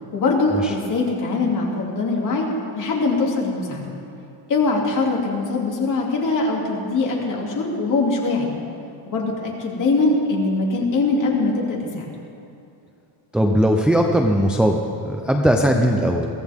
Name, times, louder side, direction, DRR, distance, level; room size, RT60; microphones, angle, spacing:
voice 1, 0.1-3.8 4.5-8.5 9.1-12.1, left 3 dB, 40° left, -2 dB, 2.7 m, -22 dB
voice 2, 13.3-14.8 15.0-16.3, equal, ahead, 1 dB, 0.5 m, -18 dB
22.5 x 15.5 x 3.6 m, 2.8 s
cardioid pair, 175°, 48 cm